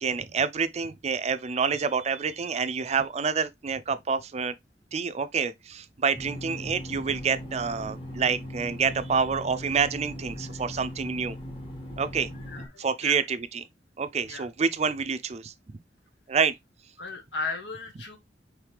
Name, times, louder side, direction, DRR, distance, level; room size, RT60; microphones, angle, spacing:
voice 1, 0.0-4.5 4.9-11.4 12.0-12.3 12.8-13.7 14.0-15.5 16.3-16.5, right 5 dB, 40° right, 0.4 m, -27 dB
sound 1, 6.1-12.7, equal, 30° left, 1.5 m, -39 dB
voice 2, 17.0-18.2, left 3 dB, 80° left, 1.3 m, -35 dB
4.9 x 3.3 x 3.2 m
head